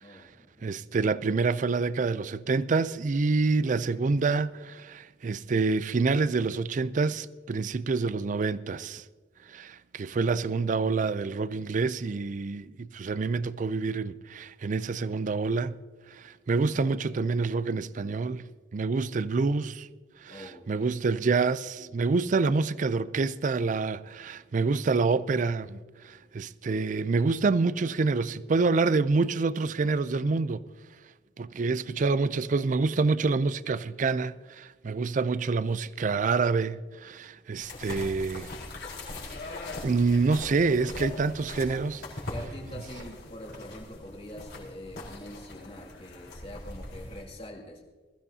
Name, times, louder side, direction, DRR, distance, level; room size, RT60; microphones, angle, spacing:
voice 1, 0.0-0.8 20.3-20.9 21.1-21.2 21.8-22.0 42.3-47.8, left 1 dB, 35° left, 2.3 m, -44 dB
voice 2, 0.6-9.0 9.5-15.8 16.1-19.9 20.2-25.8 26.0-30.7 31.4-38.5 39.8-42.0, right 4 dB, 45° right, 0.4 m, -27 dB
sound 1, 37.6-47.2, left 2 dB, 70° left, 4.3 m, -41 dB
21.5 x 15.0 x 2.7 m
head